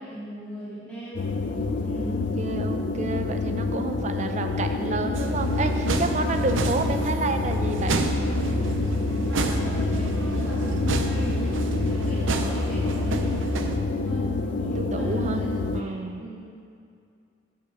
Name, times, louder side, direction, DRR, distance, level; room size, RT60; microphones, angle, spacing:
voice 1, 0.0-1.3 1.8-2.2 9.3-11.5 11.8-16.4, equal, 5° left, -11 dB, 1.9 m, -38 dB
sound 1, 1.2-15.8, left 3 dB, 70° left, 0.5 m, -28 dB
voice 2, 2.4-8.0 14.7-15.4 15.7-16.2, right 3 dB, 35° right, 6 dB, 0.5 m, -29 dB
sound 2, 5.1-13.8, right 2 dB, 90° right, 0.6 m, -28 dB
9.0 x 5.6 x 4.9 m, 2.4 s
head